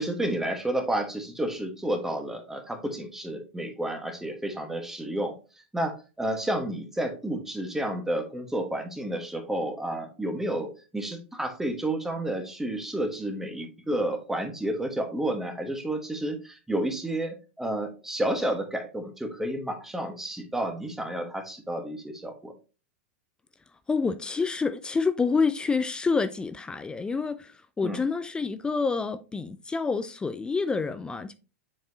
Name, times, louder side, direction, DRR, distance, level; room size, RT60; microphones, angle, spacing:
voice 1, 0.0-5.3 5.7-22.5 27.8-28.0, right 1 dB, 5° right, 1.3 m, -31 dB
voice 2, 23.9-31.3, left 4 dB, 15° left, 0.4 m, -28 dB
7.4 x 4.6 x 2.7 m
hypercardioid pair, 105°, 7 cm